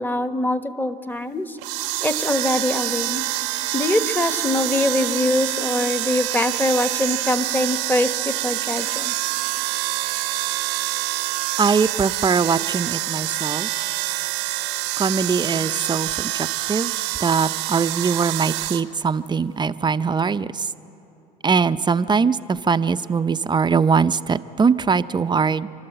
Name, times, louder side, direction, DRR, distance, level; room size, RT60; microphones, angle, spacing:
voice 1, 0.0-1.6 2.0-3.2 3.7-9.1, left 1 dB, 10° left, 10 dB, 1.1 m, -23 dB
sound 1, 1.6-18.8, right 16 dB, 85° right, 0.9 m, -26 dB
voice 2, 11.6-13.7 15.0-16.9 17.2-20.7 21.4-25.7, right 5 dB, 25° right, 12 dB, 0.6 m, -21 dB
28.0 x 12.0 x 7.9 m, 3.0 s
supercardioid pair, 80°, 19 cm